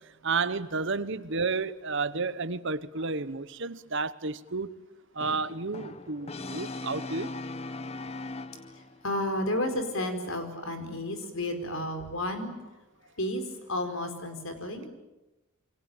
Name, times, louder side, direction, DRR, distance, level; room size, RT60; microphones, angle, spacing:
voice 1, 0.2-4.7 5.1-7.3, right 4 dB, 55° right, 1.1 m, -31 dB
Brass instrument, 5.2-9.0, left 2 dB, 30° left, 1.2 m, -39 dB
voice 2, 8.7-12.7 13.2-14.9, left 1 dB, 60° left, 4.6 m, -32 dB
27.5 x 23.5 x 8.9 m
head